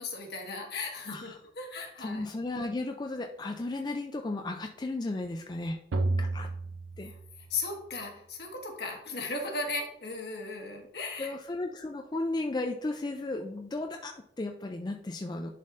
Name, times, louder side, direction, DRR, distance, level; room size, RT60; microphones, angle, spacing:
voice 1, 0.0-2.3 7.5-11.3, left 3 dB, 60° left, 1 dB, 1.5 m, -36 dB
voice 2, 2.0-6.5 7.0-7.1 11.2-15.5, left 2 dB, 25° left, 4 dB, 0.3 m, -35 dB
sound 1, 5.9-7.9, right 2 dB, 85° right, 0.5 m, -32 dB
10.5 x 4.2 x 2.5 m, 0.77 s
head